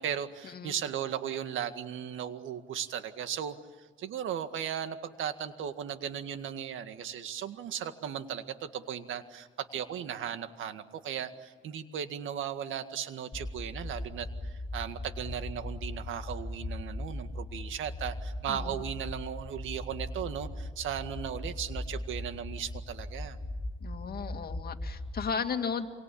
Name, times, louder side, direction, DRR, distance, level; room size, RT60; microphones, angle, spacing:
voice 1, 0.0-23.4, right 9 dB, 80° right, 9 dB, 1.9 m, -37 dB
sound 1, 13.3-25.3, left 1 dB, 30° left, 1.5 m, -39 dB
voice 2, 23.8-25.9, left 6 dB, 50° left, 6 dB, 2.3 m, -35 dB
27.0 x 24.5 x 8.6 m, 1.4 s
cardioid pair, 90°, 20 cm